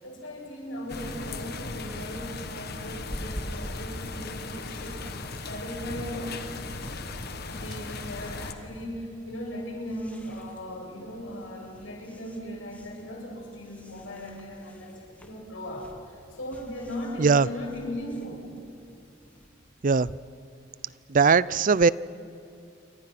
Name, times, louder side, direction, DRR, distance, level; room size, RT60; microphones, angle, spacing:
voice 1, 0.0-5.1 5.4-6.4 7.4-18.5, equal, 90° left, -1 dB, 7.8 m, -38 dB
sound 1, 0.9-8.5, left 3 dB, 55° left, 1.3 m, -37 dB
sound 2, 3.1-19.5, equal, 10° left, 2.0 m, -47 dB
voice 2, 21.1-21.9, right 5 dB, 45° right, 19 dB, 0.5 m, -19 dB
28.5 x 24.5 x 5.9 m, 2.6 s
head